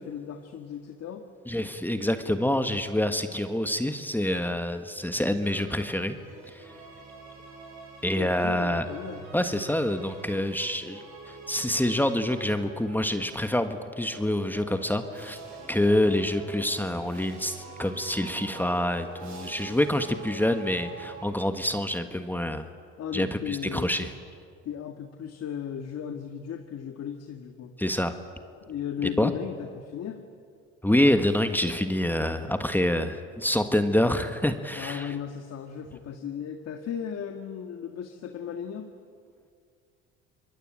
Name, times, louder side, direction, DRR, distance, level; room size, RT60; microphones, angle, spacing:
voice 1, 0.0-1.3 8.1-9.2 23.0-23.9 24.7-27.7 28.6-30.2 34.8-38.9, left 8 dB, 50° left, 5 dB, 1.8 m, -36 dB
voice 2, 1.5-6.2 6.5-6.7 8.0-8.8 9.3-15.4 15.7-22.7 23.1-24.1 27.8-28.1 29.0-29.3 30.8-35.1, left 1 dB, 5° left, 8 dB, 1.6 m, -26 dB
sound 1, 5.5-13.3 13.9-21.9, right 4 dB, 60° right, 7.2 m, -45 dB
25.5 x 22.0 x 9.0 m, 2.2 s
supercardioid pair, 80°, 32 cm